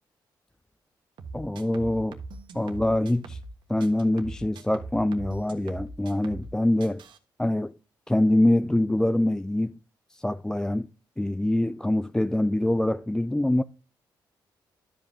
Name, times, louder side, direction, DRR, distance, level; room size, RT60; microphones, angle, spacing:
sound 1, 1.2-3.5 3.8-6.5 6.8-7.2, right 3 dB, 70° right, 1.5 m, -41 dB
voice 1, 1.3-2.2 2.5-3.4 3.7-7.0 7.4-7.7 8.1-9.8 10.1-10.9 11.2-13.6, left 1 dB, 5° left, 0.3 m, -24 dB
12.0 x 5.2 x 3.6 m
cardioid pair, 85°, 8 cm